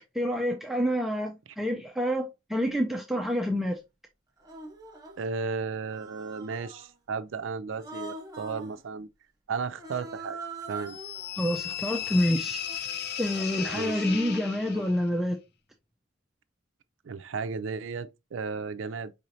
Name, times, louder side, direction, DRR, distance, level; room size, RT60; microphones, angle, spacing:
voice 1, 0.1-3.8 11.4-12.9 13.2-15.4, equal, ahead, 0.4 m, -28 dB
Human voice, 3.2-3.4 4.4-5.3 5.9-7.0 7.7-8.8 9.7-15.0, right 3 dB, 20° right, 0.9 m, -43 dB
voice 2, 5.2-9.1 9.5-10.4 10.7-11.0 13.7-13.9 17.0-19.1, right 5 dB, 70° right, 0.4 m, -34 dB
sound 1, 10.9-15.0, left 9 dB, 55° left, 0.5 m, -35 dB
4.7 x 3.1 x 2.6 m
head